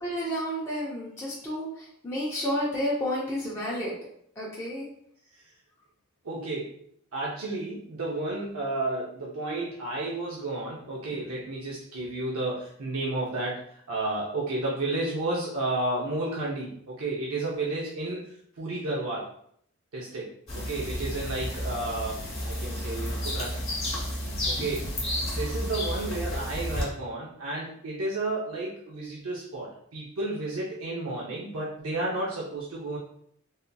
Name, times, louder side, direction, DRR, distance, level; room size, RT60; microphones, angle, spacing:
voice 1, 0.0-3.9 4.4-4.9, equal, 10° left, -7 dB, 0.6 m, -31 dB
voice 2, 6.2-6.8 7.1-19.3 19.9-20.3 20.6-23.6 24.4-24.9 25.3-33.0, right 2 dB, 85° right, -5 dB, 0.7 m, -32 dB
sound 1, 20.5-26.8, left 1 dB, 30° left, 1.2 m, -32 dB
3.5 x 2.6 x 2.2 m, 0.66 s
head